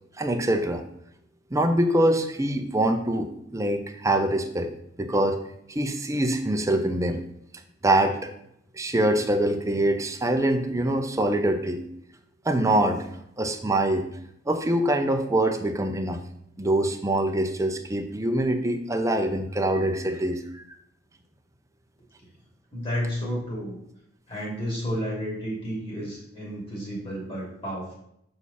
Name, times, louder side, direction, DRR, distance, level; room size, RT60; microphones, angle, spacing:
voice 1, 0.2-0.8 1.5-4.7 5.0-5.4 5.7-7.2 7.8-8.3 8.7-11.8 12.4-13.1 13.4-14.1 14.5-16.2 16.6-20.6, right 1 dB, 15° right, 5 dB, 0.7 m, -24 dB
voice 2, 22.7-23.8 24.3-27.9, equal, 30° left, -4 dB, 3.0 m, -31 dB
6.7 x 5.7 x 4.2 m, 0.74 s
head